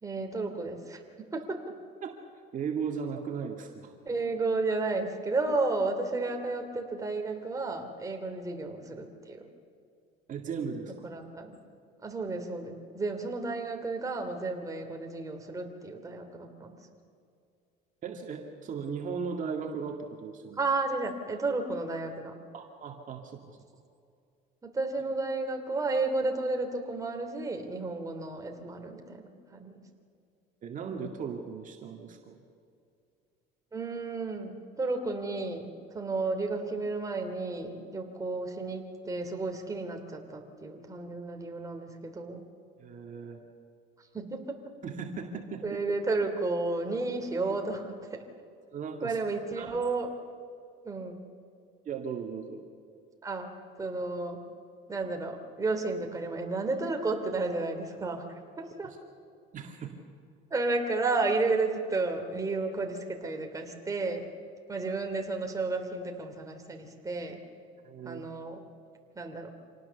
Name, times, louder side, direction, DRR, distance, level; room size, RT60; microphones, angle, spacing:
voice 1, 0.0-1.6 4.0-9.4 11.0-11.6 12.0-16.8 20.6-22.3 24.6-29.8 33.7-42.4 44.1-44.6 45.6-48.2 49.0-50.1 50.8-51.2 53.2-53.5 53.8-54.4 54.9-58.3 58.6-58.9 60.5-64.2 64.7-67.4 68.0-68.6 69.1-69.5, right 3 dB, 20° right, 3 dB, 2.8 m, -32 dB
voice 2, 2.5-3.9 10.3-10.9 18.0-20.6 22.5-23.4 30.6-32.4 42.8-43.4 44.8-45.6 48.7-49.2 49.5-49.8 51.9-52.6 59.5-59.9 67.8-68.2, right 6 dB, 45° right, 2 dB, 2.0 m, -37 dB
26.5 x 18.5 x 7.0 m, 2.4 s
cardioid pair, 120°, 19 cm